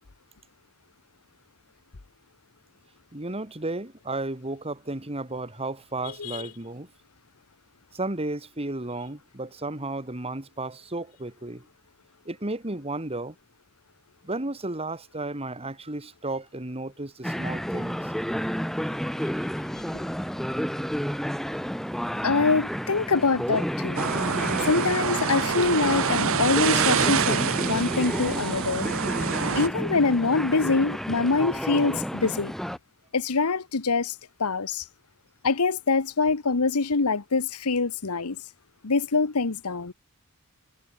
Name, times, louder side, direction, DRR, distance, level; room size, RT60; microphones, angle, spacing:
voice 1, 3.1-6.9 7.9-11.7 12.3-13.3 14.2-18.1, right 2 dB, 25° right, 2.5 m, -33 dB
sound 1, 17.2-32.8, equal, ahead, 1.9 m, -30 dB
voice 2, 22.2-24.0 24.6-28.9 29.5-32.5 33.1-34.1 34.4-34.8 35.4-38.4 38.8-39.9, left 4 dB, 85° left, 1.1 m, -24 dB
sound 2, 24.0-29.7, right 7 dB, 65° right, 1.0 m, -26 dB
head